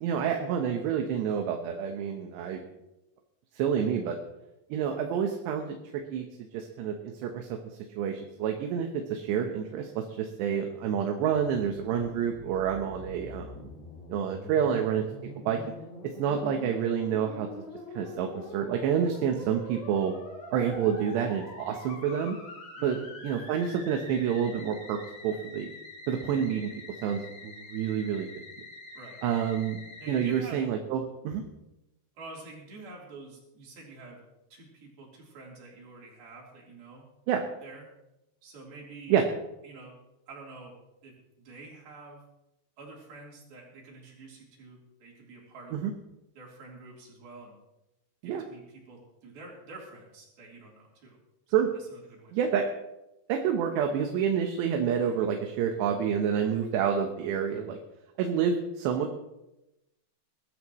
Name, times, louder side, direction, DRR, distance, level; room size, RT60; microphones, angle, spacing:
voice 1, 0.0-2.6 3.5-4.2 4.7-6.2 6.5-7.6 8.0-13.6 14.1-15.0 15.4-15.6 16.0-17.5 17.9-20.1 20.5-22.4 22.8-25.7 26.1-26.7 27.0-28.3 29.2-29.8 30.1-31.4 37.3-37.4 39.1-39.2 45.7-45.9 48.2-48.4 51.5-51.7 52.3-52.7 53.3-57.8 58.2-59.2, right 8 dB, 75° right, 3 dB, 3.1 m, -28 dB
Musical instrument, 11.3-30.4, left 2 dB, 70° left, 6.6 m, -45 dB
voice 2, 14.5-14.8 22.8-23.1 29.0-29.2 30.0-30.6 32.2-34.2 34.5-37.1 37.6-37.9 38.4-39.2 39.6-39.9 40.3-40.7 41.0-42.2 42.8-45.8 46.4-47.6 48.2-51.2 51.6-52.4, right 3 dB, 55° right, -3 dB, 5.4 m, -47 dB
21.5 x 13.5 x 3.1 m, 0.92 s
omnidirectional pair, 5.2 m